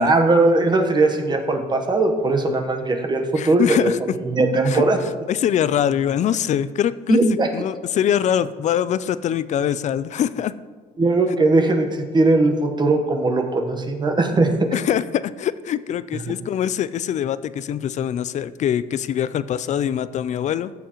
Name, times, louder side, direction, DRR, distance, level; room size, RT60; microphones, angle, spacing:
voice 1, 0.0-5.0 7.1-7.5 11.0-14.5, right 2 dB, 25° right, 4 dB, 1.1 m, -19 dB
voice 2, 3.4-4.0 4.7-4.8 5.3-7.2 7.5-10.5 14.7-20.7, left 9 dB, 45° left, 16 dB, 0.4 m, -23 dB
14.0 x 7.0 x 3.0 m, 1.4 s
cardioid pair, 110°, 17 cm